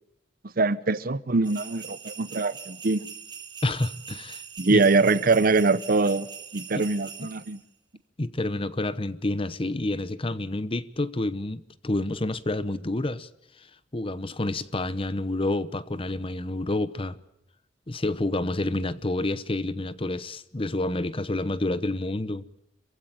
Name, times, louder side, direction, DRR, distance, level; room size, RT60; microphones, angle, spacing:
voice 1, 0.6-3.1 4.6-6.3 6.5-7.6, right 3 dB, 50° right, 0.8 m, -23 dB
sound 1, 1.4-7.6, right 7 dB, 25° right, 3.0 m, -42 dB
voice 2, 3.6-4.4 4.7-4.8 6.7-6.8 8.2-13.3 13.6-17.2 17.9-22.4, left 2 dB, 30° left, 0.9 m, -29 dB
27.0 x 15.5 x 9.0 m
head